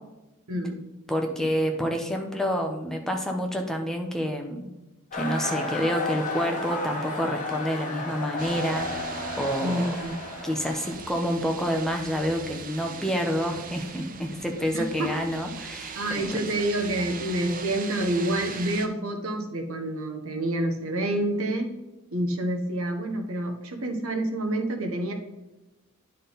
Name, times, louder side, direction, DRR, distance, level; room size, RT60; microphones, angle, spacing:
voice 1, 0.5-0.8 9.6-10.2 14.7-15.1 15.9-21.8 22.1-25.1, right 1 dB, 70° right, 4 dB, 1.1 m, -28 dB
voice 2, 1.1-4.7 5.1-9.9 10.4-16.4, equal, ahead, 2 dB, 0.7 m, -28 dB
sound 1, 5.1-10.9, left 2 dB, 35° left, 1.3 m, -33 dB
sound 2, 8.4-18.9, right 5 dB, 40° right, 0.6 m, -40 dB
10.0 x 4.1 x 3.9 m, 1.0 s
head